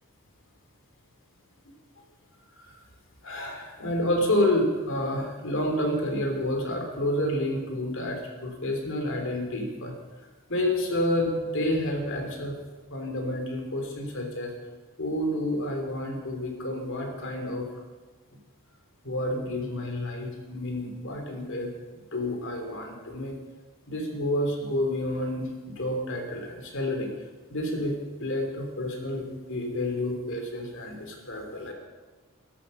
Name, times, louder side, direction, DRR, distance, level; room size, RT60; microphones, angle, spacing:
voice 1, 1.6-2.0 2.6-2.8 3.2-12.6 12.9-14.5 15.0-17.7 19.0-21.7 22.1-23.3 23.9-27.1 27.5-31.7, left 1 dB, 60° left, 3 dB, 3.1 m, -29 dB
12.5 x 12.5 x 6.5 m, 1.3 s
head